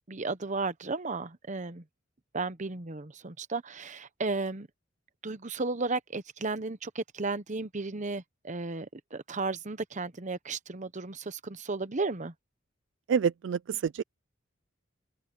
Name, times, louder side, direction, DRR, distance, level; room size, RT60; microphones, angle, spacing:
voice 1, 0.1-1.8 2.3-4.7 5.2-12.3, right 3 dB, 40° right, 1.0 m, -34 dB
voice 2, 13.1-14.0, right 6 dB, 65° right, 0.3 m, -27 dB
open air
head